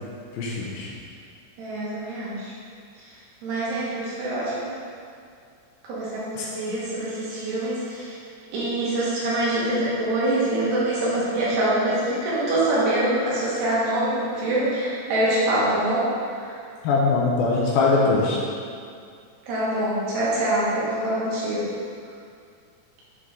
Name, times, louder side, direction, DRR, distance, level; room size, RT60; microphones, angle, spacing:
voice 1, 0.4-0.9 16.8-18.4, left 3 dB, 75° left, -3 dB, 2.4 m, -21 dB
voice 2, 1.6-2.5 3.4-4.7 5.8-8.2 8.5-16.1 16.3-16.6 19.5-21.7, right 1 dB, 90° right, -8 dB, 3.7 m, -25 dB
8.1 x 4.4 x 3.6 m, 2.3 s
omnidirectional pair, 4.6 m